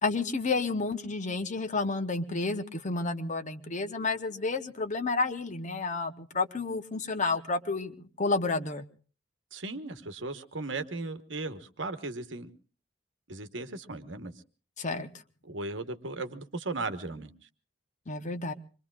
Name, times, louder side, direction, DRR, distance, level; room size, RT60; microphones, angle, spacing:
voice 1, 0.0-8.8 14.8-15.1 18.1-18.5, left 3 dB, 40° left, 10 dB, 0.9 m, -30 dB
voice 2, 9.5-12.5 13.3-14.3 15.4-17.3, right 3 dB, 70° right, 9 dB, 1.2 m, -36 dB
25.5 x 23.0 x 2.4 m, 0.38 s
head